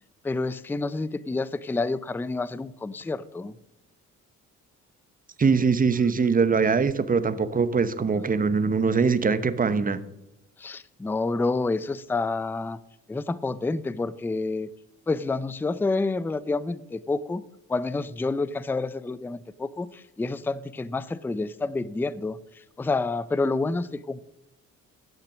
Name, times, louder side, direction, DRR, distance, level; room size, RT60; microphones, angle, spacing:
voice 1, 0.2-3.6 10.6-12.8 13.1-14.7 15.1-17.4 17.7-24.2, left 3 dB, 5° left, 18 dB, 0.4 m, -28 dB
voice 2, 5.4-10.0, right 5 dB, 30° right, 13 dB, 0.9 m, -22 dB
11.5 x 6.6 x 6.2 m, 0.89 s
cardioid pair, 90°, 30 cm